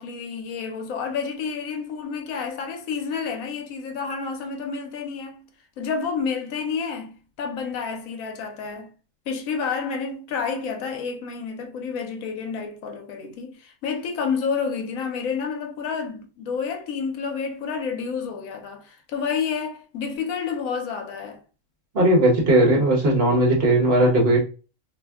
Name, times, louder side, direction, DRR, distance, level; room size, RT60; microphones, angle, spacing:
voice 1, 0.0-5.5 5.8-8.9 9.3-21.4, left 5 dB, 75° left, 1.0 m, -29 dB
voice 2, 21.9-24.4, right 1 dB, 50° right, 1.1 m, -18 dB
2.7 x 2.1 x 3.4 m
omnidirectional pair, 1.5 m